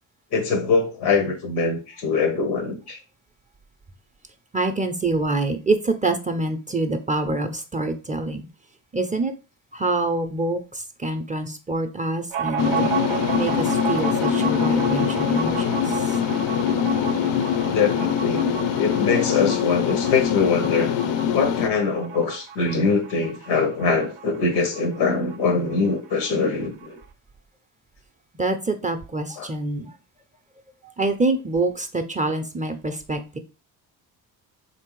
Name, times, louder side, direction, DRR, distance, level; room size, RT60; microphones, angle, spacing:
voice 1, 0.3-3.0 17.7-18.5 18.7-20.9 21.3-27.0 29.4-29.5, left 4 dB, 85° left, 6 dB, 0.9 m, -23 dB
voice 2, 4.5-8.5 8.9-9.3 9.7-12.9 13.3-16.2 28.4-29.9 31.0-33.4, right 2 dB, 15° right, 7 dB, 0.4 m, -26 dB
sound 1, 12.3-25.4 25.7-25.8 26.1-26.9, right 8 dB, 85° right, 0.6 m, -33 dB
sound 2, 12.6-21.7, left 8 dB, 65° left, 0.5 m, -23 dB
3.2 x 2.6 x 3.0 m, 0.32 s
hypercardioid pair, 50°, 48 cm